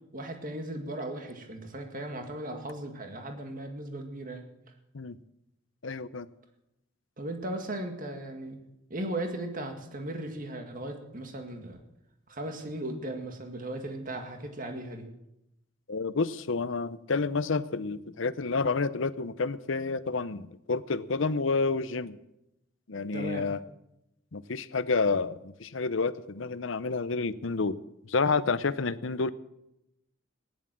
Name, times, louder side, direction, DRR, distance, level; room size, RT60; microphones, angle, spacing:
voice 1, 0.1-4.5 7.2-8.6 8.9-11.8 12.3-15.1 23.1-23.4, right 1 dB, 40° right, 5 dB, 1.9 m, -37 dB
voice 2, 5.8-6.3 15.9-22.2 22.9-23.6 24.3-27.8 28.0-29.3, left 4 dB, 65° left, 15 dB, 0.7 m, -29 dB
16.0 x 11.0 x 7.5 m, 0.85 s
head